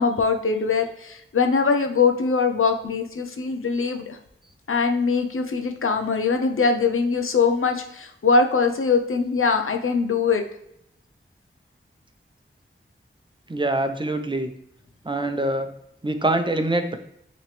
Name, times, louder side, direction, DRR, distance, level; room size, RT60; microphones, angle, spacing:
voice 1, 0.0-4.2 4.7-10.4, left 4 dB, 85° left, 5 dB, 0.7 m, -22 dB
voice 2, 13.5-14.5 15.0-15.7 16.0-17.0, right 2 dB, 25° right, 7 dB, 0.7 m, -24 dB
8.7 x 3.1 x 3.4 m, 0.75 s
wide cardioid pair, 80°, 21 cm